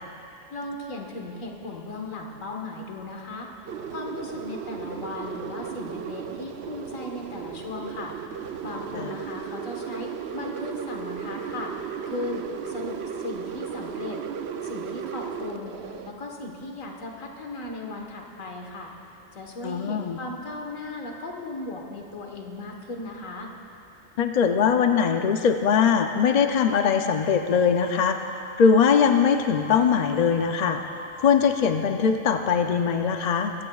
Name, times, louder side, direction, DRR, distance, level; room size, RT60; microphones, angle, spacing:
voice 1, 0.5-3.5 3.9-11.7 12.1-14.2 14.6-15.8 16.1-18.9 19.3-23.5, left 2 dB, 85° left, 1 dB, 1.8 m, -37 dB
sound 1, 3.7-16.1, right 7 dB, 60° right, 0.8 m, -35 dB
voice 2, 19.6-20.2 24.2-28.2 28.6-30.8 31.2-33.5, left 6 dB, 55° left, 6 dB, 0.4 m, -21 dB
sound 2, 27.3-31.7, left 2 dB, 35° right, 1.9 m, -44 dB
22.0 x 15.5 x 2.4 m, 2.8 s
omnidirectional pair, 1.3 m